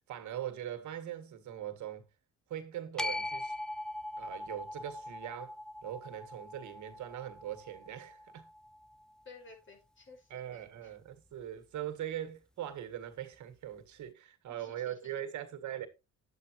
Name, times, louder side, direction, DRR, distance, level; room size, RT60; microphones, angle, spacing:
voice 1, 0.1-2.0 2.5-3.5 4.2-5.6 5.8-8.5 10.3-15.9, right 11 dB, 75° right, 2.0 m, -41 dB
sound 1, 3.0-9.2, left 1 dB, ahead, 0.4 m, -41 dB
voice 2, 9.2-10.9 14.5-15.1, left 3 dB, 40° left, 6.0 m, -55 dB
10.5 x 8.4 x 3.1 m
cardioid pair, 90°, 30 cm